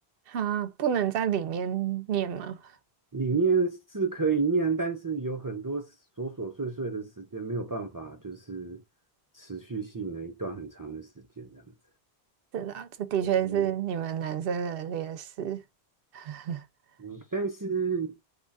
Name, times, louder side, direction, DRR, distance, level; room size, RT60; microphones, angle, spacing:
voice 1, 0.3-2.6 12.5-15.6 16.1-16.6, right 9 dB, 70° right, 0.7 m, -29 dB
voice 2, 3.1-5.9 6.2-8.8 9.3-11.7 13.4-13.7 17.0-18.1, right 4 dB, 30° right, 0.3 m, -30 dB
2.9 x 2.3 x 3.9 m
omnidirectional pair, 1.1 m